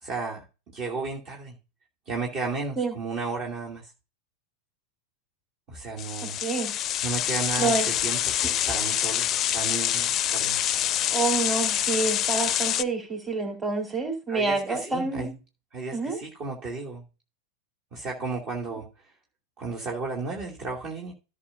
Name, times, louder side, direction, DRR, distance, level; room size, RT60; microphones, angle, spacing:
voice 1, 0.0-1.6 2.1-3.9 5.7-6.4 7.0-10.6 14.3-15.3 15.7-17.0 17.9-18.9 19.6-21.1, right 4 dB, 35° right, -1 dB, 2.7 m, -33 dB
sound 1, 6.0-12.8, left 11 dB, 30° left, 0.5 m, -26 dB
voice 2, 6.4-6.7 7.6-7.9 11.1-15.3 15.9-16.2, right 4 dB, 15° right, 4 dB, 3.9 m, -27 dB
16.0 x 6.0 x 2.7 m, 0.29 s
figure-of-eight pair, 90°, 0 cm